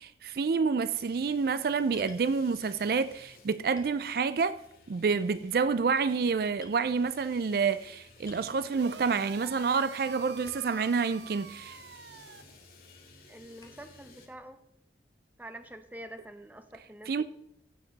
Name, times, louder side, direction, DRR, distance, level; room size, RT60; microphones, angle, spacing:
voice 1, 0.0-4.6 4.9-11.8 17.1-17.2, right 5 dB, 55° right, 0.4 m, -28 dB
sound 1, 0.8-14.3, left 3 dB, 50° left, 2.2 m, -57 dB
sound 2, 1.9-2.3 3.2-3.3 3.8-4.6 5.0-5.3 6.0-6.2 6.6-6.8 8.2-8.6 10.4-10.9 11.7-11.8 13.6-13.9, left 2 dB, 20° left, 1.4 m, -53 dB
sound 3, 8.7-12.4, right 5 dB, 75° right, 0.7 m, -46 dB
voice 2, 13.3-14.6 15.4-17.2, right 1 dB, 10° right, 0.7 m, -46 dB
16.0 x 7.3 x 4.0 m
head